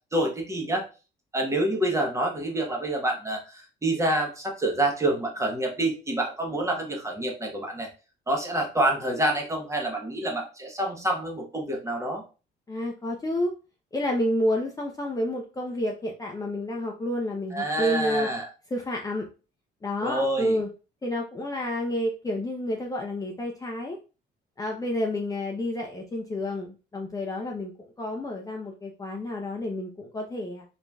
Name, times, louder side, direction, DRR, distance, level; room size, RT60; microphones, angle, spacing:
voice 1, 0.1-0.9 1.3-7.9 8.3-12.2 17.5-18.5 20.0-20.6, right 1 dB, 15° right, 1 dB, 1.0 m, -27 dB
voice 2, 12.7-13.5 13.9-18.3 18.7-19.3 19.8-20.7 21.0-24.0 24.6-27.7 28.0-30.6, left 1 dB, 15° left, 0 dB, 0.5 m, -29 dB
3.8 x 3.1 x 2.2 m, 0.33 s
cardioid pair, 105°, 21 cm